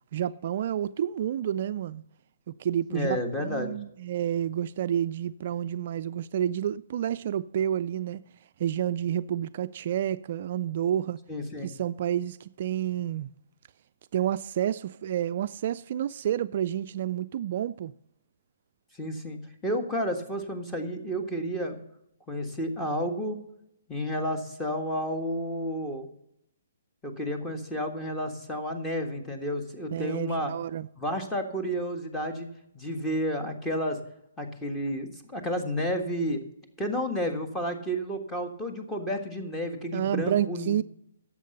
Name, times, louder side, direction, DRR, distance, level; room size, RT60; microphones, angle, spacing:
voice 1, 0.1-2.0 2.5-8.2 8.6-11.2 11.6-13.3 14.1-17.9 29.9-30.9 39.9-40.8, right 10 dB, 50° right, 0.3 m, -29 dB
voice 2, 2.9-3.7 11.3-11.7 19.0-21.8 22.3-23.4 23.9-26.1 27.0-30.5 31.0-32.5 32.7-34.0 34.4-36.4 36.8-40.8, equal, 10° left, 1.6 m, -31 dB
11.0 x 7.4 x 6.6 m
hypercardioid pair, 140°, 0 cm